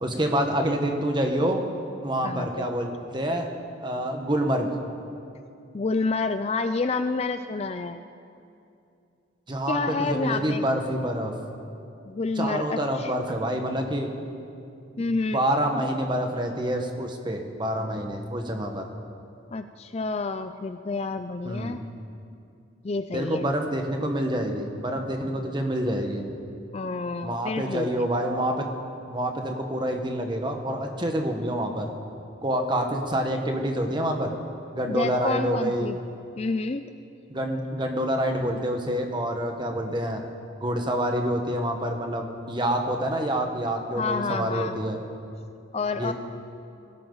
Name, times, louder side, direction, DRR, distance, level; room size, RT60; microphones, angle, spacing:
voice 1, 0.0-1.6 2.0-3.5 3.8-4.7 9.5-11.3 12.4-14.1 15.3-18.8 21.4-21.8 23.1-26.2 27.2-28.7 29.1-31.9 32.4-34.3 34.7-35.9 37.3-40.2 40.6-45.0 46.0-46.1, right 1 dB, 25° right, 3 dB, 1.3 m, -27 dB
voice 2, 2.2-2.7 5.7-8.0 9.7-10.6 12.1-13.1 15.0-15.4 15.7-15.9 19.5-21.8 22.8-23.5 26.7-28.1 34.9-36.0 36.4-36.8 44.0-44.8 45.7-46.1, left 3 dB, 30° left, 9 dB, 0.4 m, -29 dB
21.0 x 17.0 x 4.0 m, 2.6 s
head